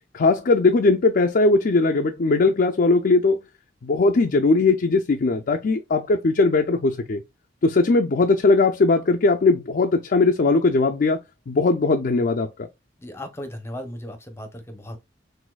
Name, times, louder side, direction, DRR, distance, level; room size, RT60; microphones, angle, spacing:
voice 1, 0.1-3.4 3.8-7.2 7.6-11.2 11.5-12.7, left 3 dB, 50° left, 0.4 m, -19 dB
voice 2, 13.0-15.0, left 1 dB, 15° left, 0.7 m, -36 dB
6.1 x 2.6 x 2.2 m
head